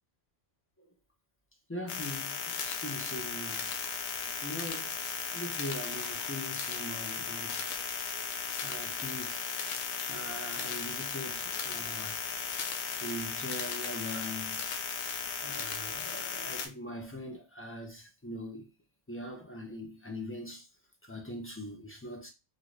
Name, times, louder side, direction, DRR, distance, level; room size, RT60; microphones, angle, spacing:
voice 1, 1.7-3.7 4.4-5.0 5.3-8.2 8.6-9.5 10.1-12.2 13.0-14.6 15.4-18.7 19.1-20.7 21.1-22.3, equal, 20° left, 0.3 m, -42 dB
sound 1, 1.9-16.7, left 6 dB, 70° left, 0.9 m, -36 dB
2.7 x 2.5 x 3.1 m
omnidirectional pair, 1.2 m